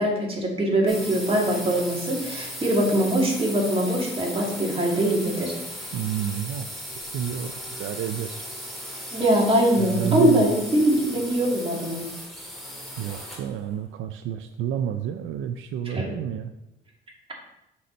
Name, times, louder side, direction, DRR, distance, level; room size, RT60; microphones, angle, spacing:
voice 1, 0.0-5.6 9.1-12.1 15.9-16.1, right 1 dB, 30° right, -2 dB, 2.0 m, -22 dB
sound 1, 0.9-13.6, equal, ahead, 2.0 m, -37 dB
voice 2, 5.9-6.7 7.1-7.5 7.8-8.4 9.7-10.5 13.0-16.5, right 9 dB, 80° right, 8 dB, 0.4 m, -29 dB
6.3 x 4.1 x 4.3 m, 0.86 s
cardioid pair, 90°, 20 cm